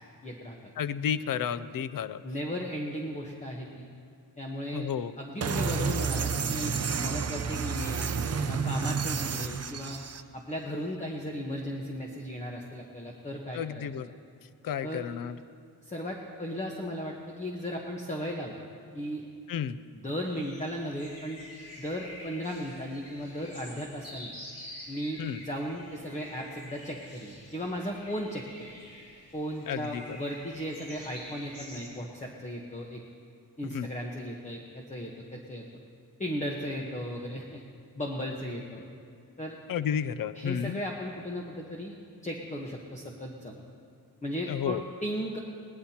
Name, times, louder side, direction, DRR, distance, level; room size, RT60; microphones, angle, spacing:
voice 1, 0.2-0.6 2.2-3.9 4.4-4.9 5.2-6.7 7.0-10.0 10.3-13.9 14.8-15.1 15.8-18.6 18.9-19.2 19.9-21.4 21.8-24.3 24.9-28.7 29.3-33.0 33.6-35.6 36.2-37.6 37.9-38.8 39.4-39.6 40.4-41.9 42.2-43.6 44.2-45.4, equal, 20° left, -1 dB, 1.1 m, -36 dB
voice 2, 0.8-2.2 4.7-5.1 13.5-14.1 14.6-15.4 19.5-19.8 25.2-25.4 29.7-30.2 33.7-33.9 39.7-40.8 44.5-44.8, left 8 dB, 65° left, 14 dB, 0.5 m, -32 dB
sound 1, 5.4-10.2, right 5 dB, 40° right, 0.6 m, -30 dB
sound 2, 20.2-31.9, left 1 dB, 40° left, 4.2 m, -48 dB
21.0 x 19.0 x 2.9 m, 2.3 s
wide cardioid pair, 165°, 38 cm